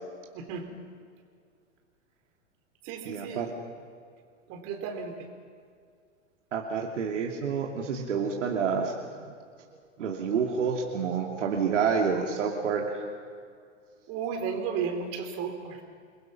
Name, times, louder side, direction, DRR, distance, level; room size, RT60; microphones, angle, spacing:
voice 1, 0.3-0.6 2.9-3.4 4.5-5.1 14.1-15.8, right 6 dB, 40° right, 4 dB, 4.2 m, -33 dB
voice 2, 3.0-3.5 6.5-8.9 10.0-13.1, right 6 dB, 70° right, 0 dB, 2.7 m, -28 dB
29.0 x 22.0 x 5.9 m, 2.2 s
figure-of-eight pair, 100°, 38 cm